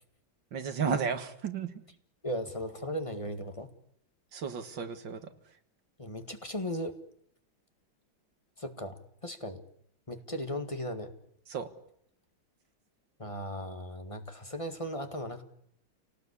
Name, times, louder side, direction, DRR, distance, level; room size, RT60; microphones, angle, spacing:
voice 1, 0.5-1.7 4.3-5.3 11.5-11.7, right 6 dB, 70° right, 9 dB, 2.4 m, -33 dB
voice 2, 2.2-3.7 6.0-6.9 8.6-9.6 10.1-11.1 13.2-15.4, equal, 15° left, 7 dB, 1.9 m, -37 dB
28.0 x 19.0 x 8.4 m, 0.70 s
omnidirectional pair, 2.1 m